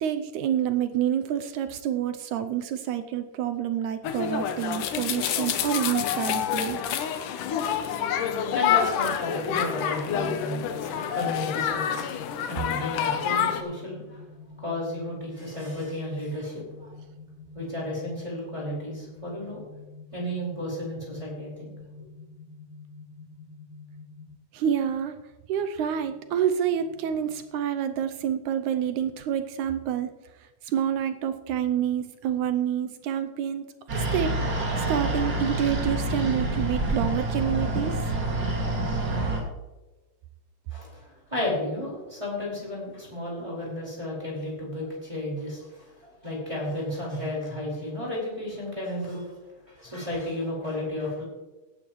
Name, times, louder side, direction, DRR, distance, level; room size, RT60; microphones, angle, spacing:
voice 1, 0.0-6.8 24.5-25.2 25.5-30.1 30.7-33.7 33.9-38.0, right 9 dB, 80° right, 10 dB, 2.0 m, -28 dB
sound 1, 4.0-13.6, left 9 dB, 80° left, 2.5 m, -27 dB
voice 2, 8.5-12.2 12.5-14.2 14.6-16.9 17.5-19.6 20.1-21.7 40.7-45.9 46.2-49.3 49.8-51.2, left 1 dB, 10° right, -5 dB, 4.6 m, -33 dB
sound 2, 9.3-24.3, left 3 dB, 5° left, 3.3 m, -47 dB
sound 3, 33.9-39.4, right 2 dB, 35° right, 2.4 m, -27 dB
17.0 x 11.5 x 3.1 m, 1.1 s
omnidirectional pair, 3.6 m